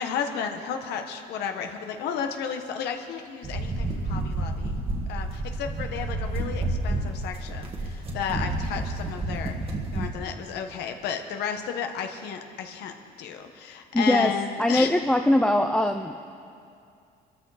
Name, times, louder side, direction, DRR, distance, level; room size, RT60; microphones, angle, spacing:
voice 1, 0.0-4.8 5.1-9.6 9.9-12.9 13.2-14.9, left 7 dB, 80° left, 5 dB, 1.3 m, -33 dB
sound 1, 3.4-10.1, right 2 dB, 35° right, 1.8 m, -30 dB
voice 2, 13.9-14.3 14.6-16.2, left 1 dB, 5° left, 4 dB, 0.5 m, -22 dB
23.0 x 13.5 x 4.2 m, 2.4 s
cardioid pair, 110°, 17 cm